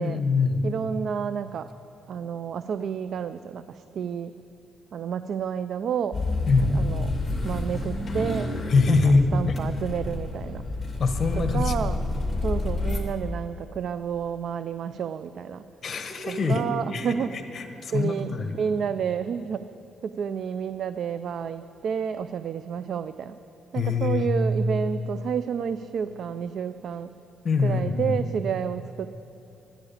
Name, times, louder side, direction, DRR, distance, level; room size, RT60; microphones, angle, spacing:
voice 1, 0.0-0.7 6.5-6.9 8.7-9.6 11.0-11.9 15.8-16.7 16.9-18.6 23.7-24.3 27.4-28.2, left 4 dB, 45° left, 6 dB, 1.3 m, -24 dB
voice 2, 0.6-1.7 2.1-4.3 4.9-6.2 6.6-7.1 7.4-8.5 8.9-9.0 9.3-10.6 11.5-12.0 12.4-15.6 16.3-17.3 17.9-19.7 20.0-23.4 23.7-27.1 27.6-29.1, right 7 dB, 65° right, 13 dB, 0.3 m, -30 dB
sound 1, 6.1-13.0, left 2 dB, 20° left, 2.6 m, -29 dB
11.5 x 9.8 x 8.7 m, 2.8 s
cardioid pair, 90°, 0 cm